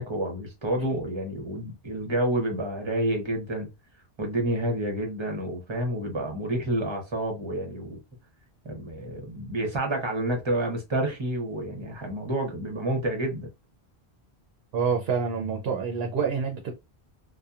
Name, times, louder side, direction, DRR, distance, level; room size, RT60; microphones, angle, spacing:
voice 1, 0.0-3.7 4.2-8.0 8.6-13.5, right 1 dB, 30° right, 0.8 m, -29 dB
voice 2, 14.7-16.7, right 5 dB, 70° right, 0.8 m, -27 dB
2.8 x 2.2 x 2.3 m
omnidirectional pair, 1.1 m